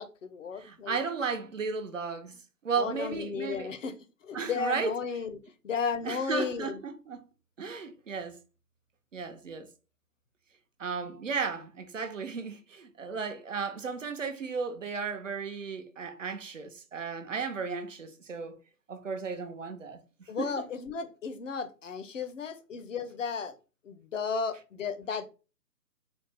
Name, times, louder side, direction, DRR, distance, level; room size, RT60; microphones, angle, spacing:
voice 1, 0.0-1.0 2.8-3.9 4.2-6.8 20.3-23.5 23.8-25.3, left 5 dB, 55° left, 0.6 m, -34 dB
voice 2, 0.6-3.7 4.3-4.9 6.0-7.2 7.6-8.4 9.1-9.7 10.8-18.6 18.9-20.7, right 5 dB, 55° right, 0.7 m, -35 dB
4.1 x 2.0 x 3.3 m
figure-of-eight pair, 155°, 48 cm